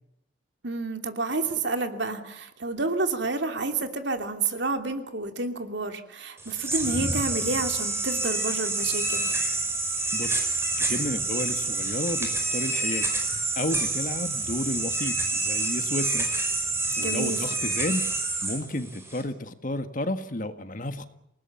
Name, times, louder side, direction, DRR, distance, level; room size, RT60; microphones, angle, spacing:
voice 1, 0.6-9.3 17.0-17.4, right 3 dB, 60° right, 6 dB, 3.0 m, -29 dB
sound 1, 6.4-19.2, right 3 dB, 15° right, 5.4 m, -28 dB
voice 2, 10.1-10.5 10.8-13.1 13.6-16.3 17.0-18.1 18.4-21.1, left 1 dB, 40° left, 9 dB, 1.7 m, -32 dB
29.0 x 19.0 x 7.2 m, 0.80 s
head